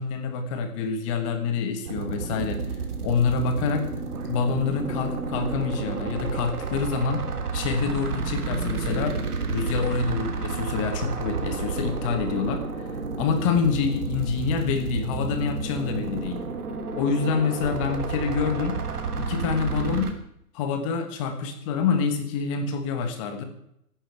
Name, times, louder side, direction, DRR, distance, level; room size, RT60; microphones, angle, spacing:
voice 1, 0.0-2.6 3.0-3.9 4.3-7.2 7.5-9.2 9.5-12.6 13.2-16.4 16.9-18.8 19.2-20.1 20.5-23.4, left 5 dB, 20° left, 7 dB, 1.5 m, -26 dB
sound 1, 1.8-20.1, right 4 dB, 75° right, 3.1 m, -31 dB
16.5 x 11.0 x 4.7 m, 0.75 s
hypercardioid pair, 160°, 46 cm